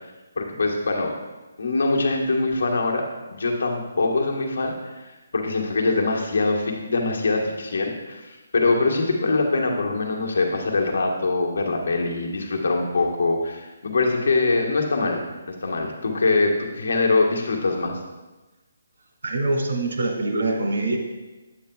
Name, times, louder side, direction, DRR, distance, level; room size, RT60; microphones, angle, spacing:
voice 1, 0.4-1.1 1.6-5.0 5.3-15.2 15.6-18.0, left 3 dB, 75° left, 1 dB, 1.3 m, -23 dB
voice 2, 19.2-21.0, right 2 dB, 75° right, 2 dB, 1.9 m, -24 dB
8.9 x 8.3 x 2.3 m, 1.2 s
hypercardioid pair, 165°, 0 cm